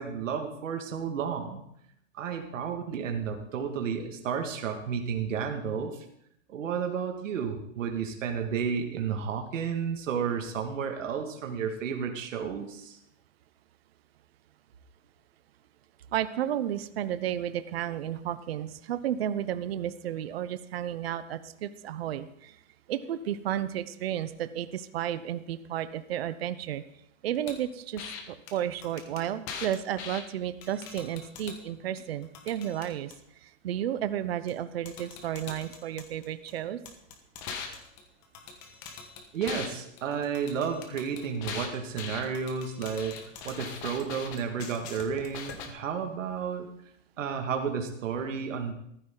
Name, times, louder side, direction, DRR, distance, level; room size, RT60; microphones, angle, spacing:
voice 1, 0.0-1.6 2.1-6.0 6.5-13.0 39.3-46.7 47.2-48.7, right 6 dB, 65° right, 4 dB, 2.2 m, -32 dB
voice 2, 16.1-22.6 22.9-26.8 27.2-33.1 33.4-36.8, right 11 dB, 50° right, 13 dB, 0.8 m, -32 dB
sound 1, 27.5-27.6 28.0-28.2 28.5-28.6 28.8-30.2 30.6-31.6 32.0-33.2 34.5-34.6 34.9-36.5 36.9-39.7 40.0-45.7, left 6 dB, 20° left, 1.3 m, -41 dB
16.0 x 14.5 x 3.9 m, 0.74 s
supercardioid pair, 175°, 40 cm